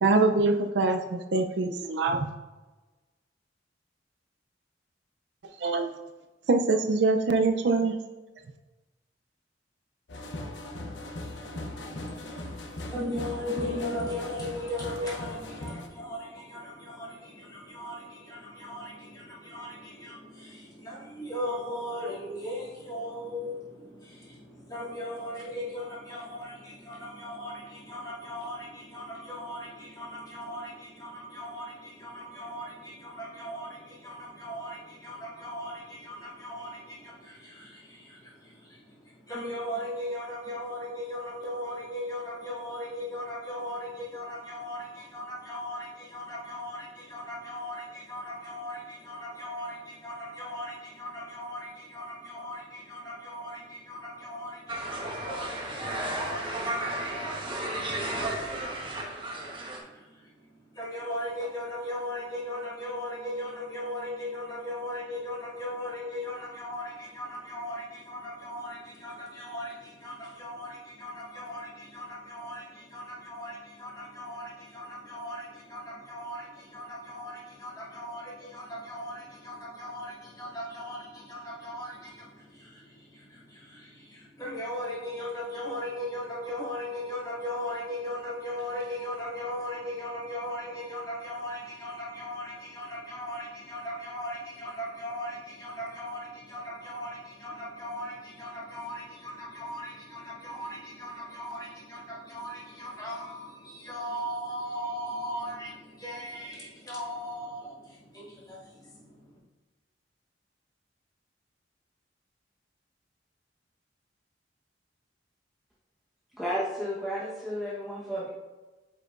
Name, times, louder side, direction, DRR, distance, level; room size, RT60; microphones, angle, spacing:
voice 1, 0.0-2.3 5.6-5.9 6.5-8.0, right 3 dB, 70° right, 6 dB, 0.5 m, -24 dB
sound 1, 10.1-15.9, left 1 dB, 80° left, 0.8 m, -39 dB
voice 2, 11.4-109.4, left 1 dB, 20° left, -7 dB, 2.3 m, -38 dB
sound 2, 54.7-59.8, right 1 dB, 30° right, 1.1 m, -33 dB
voice 3, 116.3-118.3, equal, ahead, -8 dB, 1.0 m, -32 dB
9.0 x 5.7 x 2.5 m, 1.2 s
head